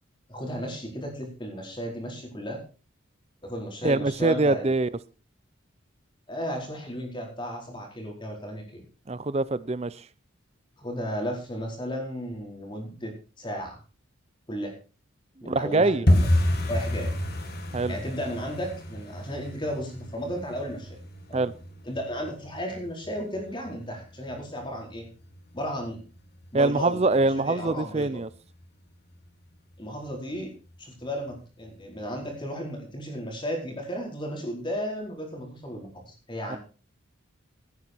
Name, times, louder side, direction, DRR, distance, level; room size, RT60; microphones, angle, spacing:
voice 1, 0.3-2.6 3.4-4.7 6.3-8.8 10.8-13.1 13.4-13.8 14.5-14.7 15.4-16.1 16.7-17.1 17.9-21.0 21.3-21.5 21.8-25.1 25.5-26.0 26.5-28.2 29.8-30.5 30.8-36.6, equal, 25° left, 4.5 m, -34 dB
voice 2, 3.8-4.9 9.1-10.0 15.4-16.1 17.7-17.9 21.3-21.5 26.5-28.3 36.5-36.6, right 2 dB, 30° right, 0.5 m, -24 dB
sound 1, 16.1-26.8 27.0-27.7 28.0-28.3 28.5-28.9 29.2-29.3 29.8-30.4 30.7-30.8 31.3-31.4, left 1 dB, 50° left, 1.8 m, -30 dB
17.5 x 9.4 x 4.5 m
head